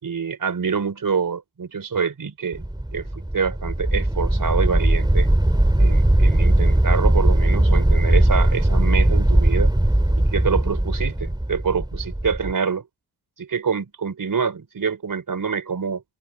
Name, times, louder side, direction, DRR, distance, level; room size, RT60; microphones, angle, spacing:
voice 1, 0.0-2.6 2.9-5.3 5.8-9.7 10.1-12.9 13.4-16.0, right 6 dB, 50° right, 4.8 m, -26 dB
sound 1, 2.5-12.5, right 1 dB, 10° right, 4.1 m, -19 dB
supercardioid pair, 50°, 42 cm